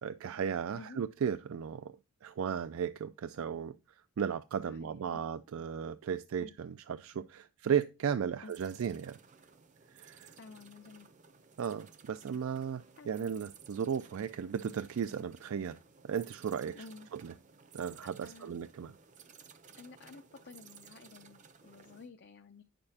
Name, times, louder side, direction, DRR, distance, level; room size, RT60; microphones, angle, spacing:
voice 1, 0.0-3.8 4.2-9.2 9.9-10.3 11.6-15.8 16.0-16.8 17.1-17.3 17.7-18.9, right 7 dB, 70° right, 0.3 m, -35 dB
voice 2, 4.6-5.3 6.4-6.5 8.4-8.5 10.4-11.1 13.0-13.1 16.7-17.1 18.0-18.6 19.8-22.6, left 4 dB, 50° left, 0.5 m, -52 dB
sound 1, 8.5-22.1, right 6 dB, 35° right, 0.6 m, -57 dB
9.5 x 6.7 x 2.8 m
head